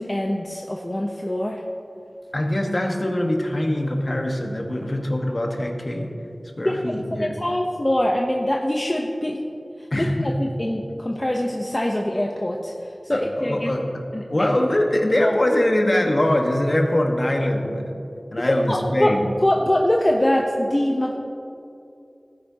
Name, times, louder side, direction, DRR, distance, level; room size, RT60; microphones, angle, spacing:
voice 1, 0.0-1.6 6.6-9.4 10.0-13.7 14.1-14.5 15.2-15.3 18.5-19.1 19.4-21.2, left 1 dB, 25° left, 0 dB, 0.8 m, -24 dB
voice 2, 2.3-6.1 6.6-7.3 9.9-10.3 13.1-14.0 14.3-18.0 18.3-19.2, left 1 dB, 45° left, 2 dB, 1.4 m, -23 dB
17.0 x 10.0 x 2.9 m, 2.6 s
wide cardioid pair, 60°, 0 cm